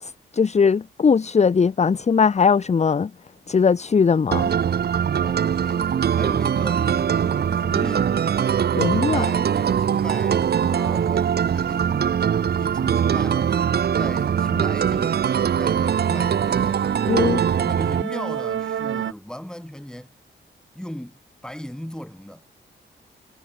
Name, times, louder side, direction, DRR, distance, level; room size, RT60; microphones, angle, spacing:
voice 1, 0.0-3.1 3.5-4.5 8.8-9.3 17.1-17.4, left 5 dB, 35° left, 0.7 m, -19 dB
sound 1, 4.3-18.0, right 8 dB, 50° right, 0.6 m, -22 dB
voice 2, 5.2-5.9 6.1-8.2 9.1-12.2 12.5-13.6 14.0-15.3 15.6-16.8 17.6-20.1 20.7-21.2 21.4-22.4, equal, 5° left, 5.6 m, -37 dB
sound 2, 7.1-9.5 9.9-13.6 14.0-14.3 14.7-14.8 15.1-19.1, right 9 dB, 70° right, 1.1 m, -35 dB
cardioid pair, 100°, 21 cm